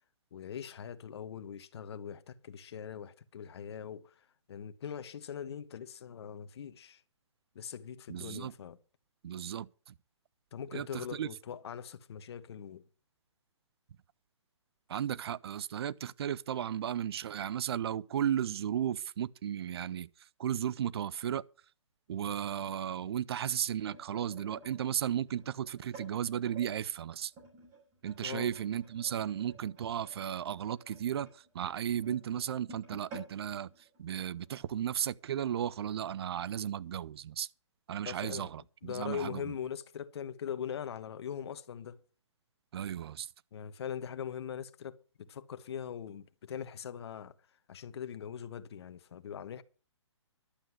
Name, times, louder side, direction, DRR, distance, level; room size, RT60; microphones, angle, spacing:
voice 1, 0.3-7.0 7.5-8.8 10.5-12.8 28.2-28.5 38.0-38.5 38.8-42.0 43.5-47.3 47.7-49.6, left 8 dB, 55° left, 1.2 m, -41 dB
voice 2, 8.1-8.5 9.2-9.9 10.7-11.3 14.9-20.1 20.4-21.4 22.1-27.3 28.0-33.7 34.0-37.5 37.9-39.5 42.7-43.3, right 9 dB, 55° right, 0.5 m, -35 dB
sound 1, 23.7-26.7 27.3-34.6 35.0-35.2 35.5-35.8 36.5-36.6, right 2 dB, 25° right, 6.4 m, -53 dB
11.5 x 7.8 x 7.5 m
hypercardioid pair, 140°, 16 cm